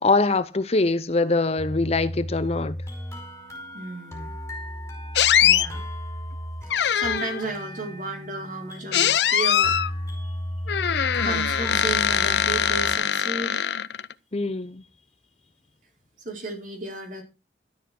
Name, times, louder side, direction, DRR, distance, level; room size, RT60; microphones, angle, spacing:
voice 1, 0.0-2.8 14.3-14.8, left 3 dB, 35° left, 0.7 m, -23 dB
sound 1, 1.6-13.0, equal, 15° left, 5.0 m, -35 dB
voice 2, 3.7-4.3 5.4-5.9 6.9-9.8 11.2-13.8 16.2-17.2, right 3 dB, 50° right, 4.5 m, -33 dB
sound 2, 5.2-5.7 6.7-7.5 8.9-9.9 10.7-14.1, left 9 dB, 75° left, 0.6 m, -22 dB
13.0 x 6.8 x 6.0 m
head